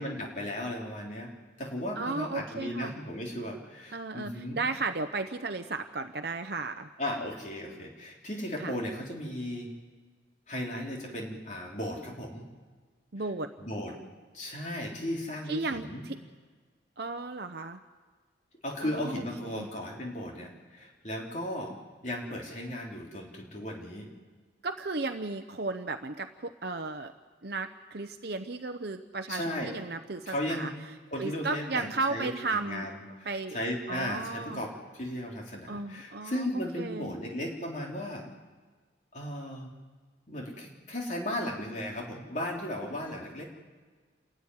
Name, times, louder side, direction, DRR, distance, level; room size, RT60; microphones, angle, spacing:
voice 1, 0.0-1.3 1.6-4.6 7.0-9.7 10.5-12.5 13.6-13.9 14.3-16.0 18.6-21.8 22.0-24.1 29.3-29.7 30.3-30.7 31.1-38.3 39.1-39.7 40.3-43.4, left 1 dB, 40° left, -1 dB, 3.6 m, -36 dB
voice 2, 1.9-2.9 3.9-6.9 8.6-8.7 13.1-13.5 15.5-16.2 17.0-17.8 18.8-19.7 24.6-27.1 27.4-30.7 31.2-32.9 33.2-33.6 33.9-34.6 35.7-37.1, right 3 dB, 60° right, 7 dB, 0.8 m, -34 dB
28.0 x 13.5 x 9.8 m, 1.5 s
head